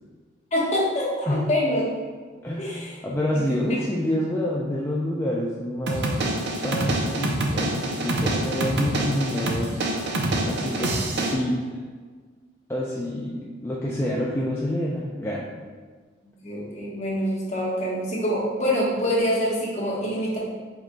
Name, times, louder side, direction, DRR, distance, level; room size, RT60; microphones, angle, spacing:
voice 1, 0.5-1.8 2.6-3.0 10.6-10.9 16.4-20.4, equal, 35° left, -6 dB, 1.1 m, -25 dB
voice 2, 2.4-6.4 6.6-9.9 10.4-11.0 11.3-11.8 12.7-15.5, left 1 dB, 15° left, -4 dB, 0.3 m, -28 dB
sound 1, 5.9-11.3, right 2 dB, 60° right, 0.5 m, -26 dB
4.8 x 4.4 x 2.2 m, 1.5 s
head